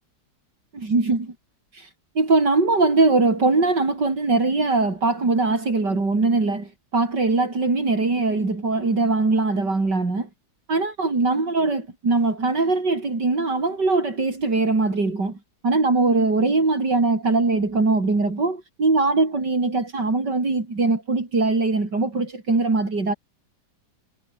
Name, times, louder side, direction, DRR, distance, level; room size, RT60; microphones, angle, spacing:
voice 1, 0.7-1.3 1.7-1.9 2.2-10.3 10.7-15.4 15.6-23.1, right 3 dB, 80° right, 5.4 m, -21 dB
omnidirectional pair, 1.8 m